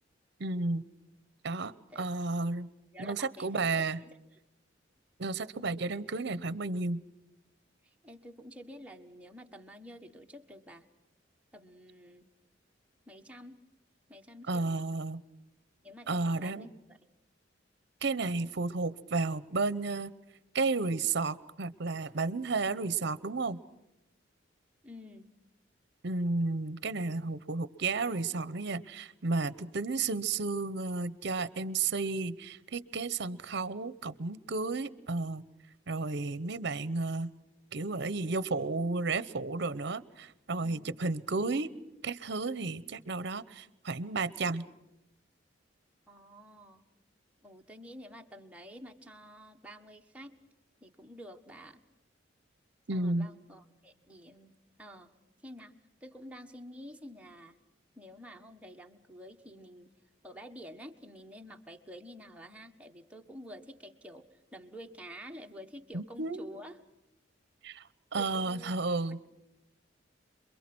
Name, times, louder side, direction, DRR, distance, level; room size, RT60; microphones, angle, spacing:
voice 1, 0.4-0.8 1.4-2.7 3.0-4.0 5.2-7.0 14.5-15.2 16.1-16.7 18.0-20.1 20.5-23.6 26.0-35.4 35.9-37.3 37.7-41.7 42.0-44.7 52.9-53.3 65.9-66.4 67.6-67.8 68.1-69.2, right 3 dB, 60° right, 17 dB, 0.8 m, -32 dB
voice 2, 2.9-4.1 7.8-10.9 11.5-12.3 13.1-13.6 14.1-14.9 15.8-17.0 24.8-25.3 40.6-41.0 46.1-46.8 47.4-50.4 50.8-51.8 52.9-55.1 55.4-55.7 56.0-57.6 58.0-59.9 60.2-66.7 68.1-68.7 69.1-69.2, equal, 5° right, 2 dB, 1.4 m, -49 dB
27.5 x 23.0 x 6.2 m, 0.92 s
head